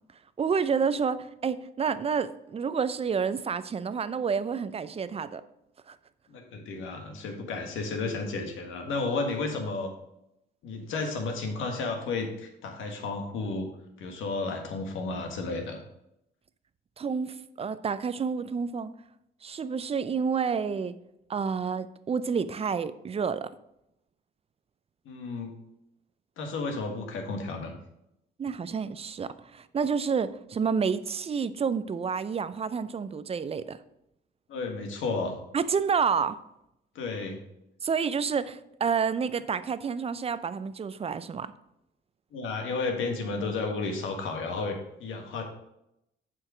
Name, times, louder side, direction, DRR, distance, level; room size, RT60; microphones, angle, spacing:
voice 1, 0.4-5.4 5.9-6.0 17.0-18.9 19.4-20.9 21.3-23.5 28.4-33.8 35.5-36.4 37.8-41.5, right 6 dB, 30° right, 14 dB, 0.5 m, -29 dB
voice 2, 6.3-9.9 10.6-13.7 14.0-15.8 25.0-25.5 26.4-27.7 34.5-35.4 36.9-37.4 42.3-45.4, left 3 dB, 80° left, 3 dB, 1.5 m, -32 dB
7.6 x 4.7 x 4.9 m, 0.82 s
cardioid pair, 90°, 20 cm